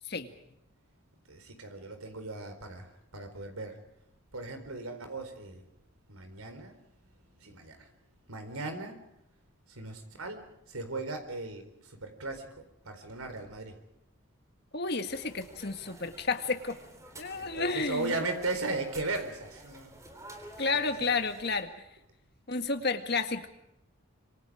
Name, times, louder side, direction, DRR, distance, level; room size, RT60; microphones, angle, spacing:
voice 1, 1.3-3.8 4.3-5.6 6.1-6.8 7.4-7.9 8.3-9.0 9.7-13.8 17.3-19.9 20.6-21.1, right 3 dB, 90° right, 7 dB, 4.4 m, -37 dB
voice 2, 14.7-16.8 17.2-18.1 20.6-21.7 22.5-23.5, left 3 dB, 50° left, 7 dB, 1.9 m, -31 dB
sound 1, 15.1-21.6, right 1 dB, 15° right, 3.6 m, -51 dB
26.0 x 26.0 x 5.0 m, 0.84 s
head